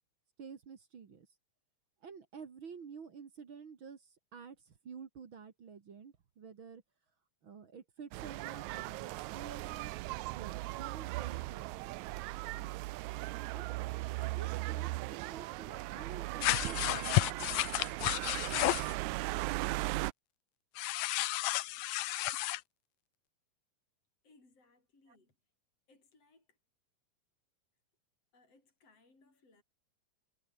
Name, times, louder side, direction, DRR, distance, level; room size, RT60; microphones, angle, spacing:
voice 1, 0.4-1.3 2.0-6.8 7.4-9.9 10.3-11.9 13.5-13.9 14.2-17.6 25.1-25.2, right 6 dB, 45° right, 2.1 m, -50 dB
sound 1, 8.1-20.1, right 20 dB, 85° right, 1.7 m, -38 dB
sound 2, 16.4-18.9 20.8-22.6, left 17 dB, 85° left, 2.4 m, -32 dB
voice 2, 24.2-25.4 25.9-26.6 28.3-29.6, left 3 dB, 45° left, 8.8 m, -66 dB
omnidirectional pair, 3.9 m